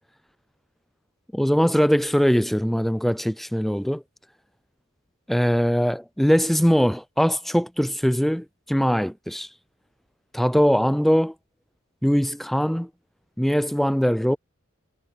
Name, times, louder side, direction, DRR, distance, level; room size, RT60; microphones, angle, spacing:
voice 1, 1.3-4.0 5.3-9.5 10.3-11.3 12.0-12.9 13.4-14.4, equal, ahead, 0.3 m, -21 dB
head